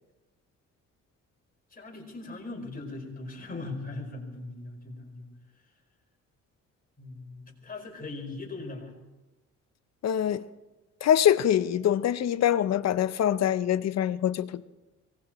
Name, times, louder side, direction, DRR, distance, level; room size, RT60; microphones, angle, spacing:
voice 1, 1.7-5.2 7.0-8.9, left 3 dB, 30° left, 5.0 m, -39 dB
voice 2, 10.0-10.4 11.0-14.6, left 10 dB, 60° left, 0.7 m, -24 dB
23.5 x 19.5 x 3.1 m
cardioid pair, 90°, 30 cm